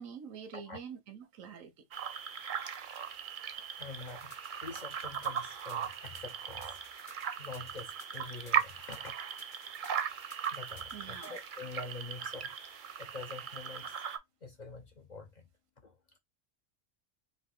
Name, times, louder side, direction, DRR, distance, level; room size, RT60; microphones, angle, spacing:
voice 1, 0.0-1.7 10.9-11.4, right 7 dB, 85° right, 1.2 m, -46 dB
sound 1, 1.9-14.2, right 8 dB, 55° right, 0.6 m, -38 dB
voice 2, 3.8-4.3 4.6-6.8 7.4-9.1 10.5-12.5 13.0-14.1 14.4-15.5 15.8-16.0, left 3 dB, 45° left, 0.6 m, -46 dB
sound 2, 4.1-11.4, left 4 dB, 70° left, 1.6 m, -57 dB
3.9 x 2.7 x 3.5 m
omnidirectional pair, 1.3 m